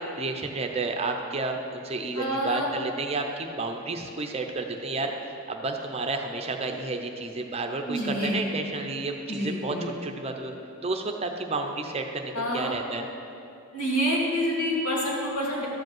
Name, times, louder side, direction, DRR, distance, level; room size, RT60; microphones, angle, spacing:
voice 1, 0.0-10.5 10.8-13.1, right 3 dB, 25° right, 3 dB, 0.6 m, -31 dB
voice 2, 2.1-2.7 7.9-8.3 9.3-9.8 12.3-12.7 13.7-15.7, equal, 80° left, -5 dB, 2.9 m, -27 dB
12.5 x 5.2 x 7.8 m, 2.7 s
head